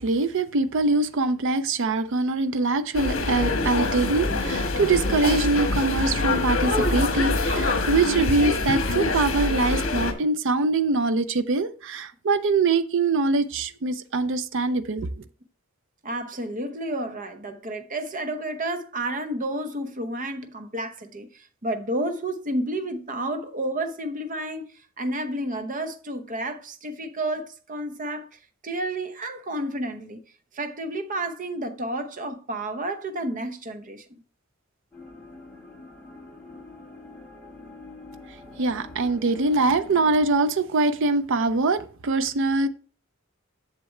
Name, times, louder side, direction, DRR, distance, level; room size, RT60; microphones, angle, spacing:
voice 1, 0.0-15.1 38.6-42.7, right 3 dB, 60° right, 0.5 m, -23 dB
sound 1, 2.9-10.1, left 2 dB, 70° left, 1.2 m, -25 dB
voice 2, 16.0-24.7 25.0-28.3 28.6-30.2 30.5-34.2 38.5-38.6, right 1 dB, 40° right, 0.8 m, -31 dB
sound 2, 34.9-40.3, left 3 dB, 5° left, 1.8 m, -45 dB
7.9 x 6.7 x 3.2 m
head